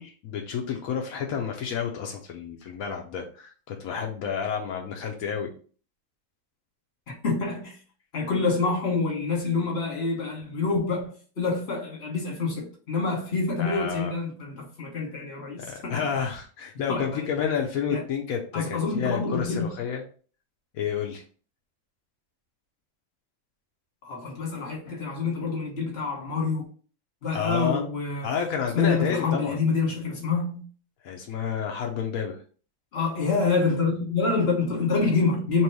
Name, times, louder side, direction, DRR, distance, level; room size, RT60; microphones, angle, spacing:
voice 1, 0.0-5.5 13.6-14.1 15.6-20.0 20.7-21.2 27.3-27.9 28.2-29.6 31.0-32.4, left 7 dB, 85° left, 0.7 m, -30 dB
voice 2, 7.2-7.8 8.1-16.0 16.9-17.3 17.9-18.0 18.5-19.7 24.0-26.6 27.2-28.3 28.7-30.6 32.9-35.6, left 4 dB, 35° left, 1.3 m, -27 dB
3.0 x 3.0 x 4.6 m
omnidirectional pair, 2.3 m